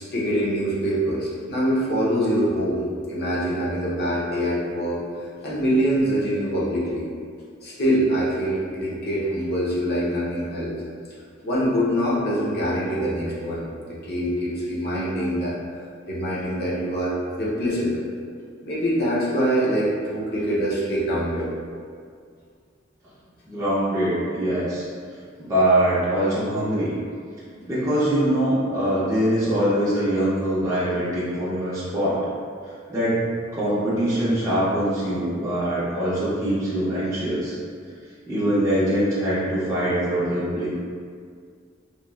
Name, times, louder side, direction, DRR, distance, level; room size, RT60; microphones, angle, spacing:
voice 1, 0.0-5.0 5.4-7.1 7.6-10.7 11.4-13.6 14.0-15.5 16.1-18.0 18.6-21.5, equal, 50° left, -6 dB, 0.6 m, -24 dB
voice 2, 23.5-24.9 25.4-26.9 27.7-32.2 32.6-37.6 38.3-40.7, right 1 dB, 15° right, -11 dB, 0.5 m, -23 dB
3.0 x 2.3 x 2.2 m, 2.1 s
head